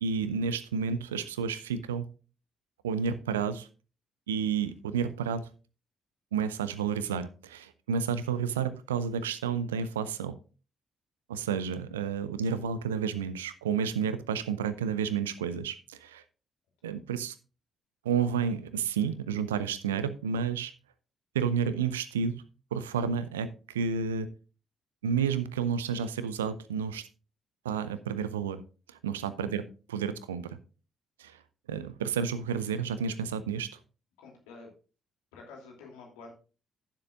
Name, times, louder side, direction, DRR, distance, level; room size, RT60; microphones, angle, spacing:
voice 1, 0.0-2.1 2.8-3.7 4.3-5.5 6.3-10.3 11.3-16.2 16.8-17.3 18.0-20.7 21.3-22.4 22.7-24.3 25.0-27.1 27.6-28.6 28.9-30.5 31.2-31.4 31.7-33.8, right 6 dB, 75° right, 15 dB, 0.5 m, -31 dB
voice 2, 34.2-34.7 35.3-36.3, left 4 dB, 70° left, 0 dB, 2.8 m, -48 dB
15.5 x 7.4 x 2.5 m, 0.35 s
figure-of-eight pair, 40°, 0 cm